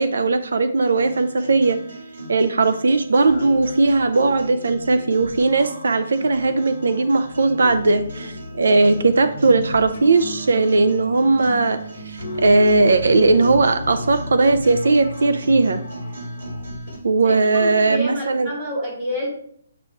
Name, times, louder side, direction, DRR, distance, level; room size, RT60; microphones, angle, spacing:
voice 1, 0.0-1.8 2.3-11.8 12.0-15.8 17.0-18.5, right 3 dB, 85° right, 10 dB, 0.4 m, -18 dB
sound 1, 0.9-17.0, right 2 dB, 50° right, 1.9 m, -36 dB
sound 2, 3.0-16.9, left 3 dB, 50° left, 1.2 m, -36 dB
voice 2, 17.6-19.3, equal, 15° right, -4 dB, 1.5 m, -28 dB
7.5 x 3.0 x 4.4 m, 0.65 s
hypercardioid pair, 180°, 0 cm